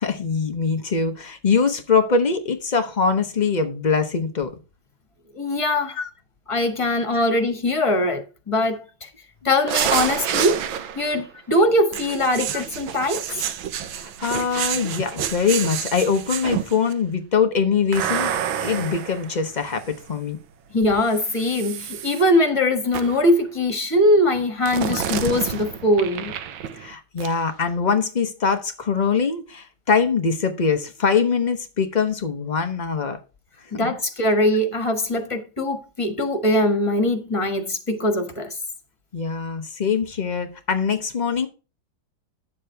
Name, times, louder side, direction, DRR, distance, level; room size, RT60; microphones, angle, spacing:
voice 1, 0.0-4.5 6.0-6.1 7.1-7.2 12.5-12.6 13.9-18.3 18.6-20.4 24.9-25.0 26.7-33.2 33.8-33.9 39.1-41.5, left 5 dB, 75° left, 0.4 m, -23 dB
voice 2, 5.3-6.0 6.5-9.1 9.4-10.6 10.9-13.2 20.7-26.3 33.7-38.5, left 1 dB, 20° left, 1.2 m, -21 dB
sound 1, 9.7-11.2 11.9-16.9 17.9-20.1 21.0-22.2 22.9-23.3 24.7-26.9 27.2-27.3, right 9 dB, 75° right, 1.6 m, -29 dB
9.7 x 7.4 x 3.4 m
omnidirectional pair, 2.2 m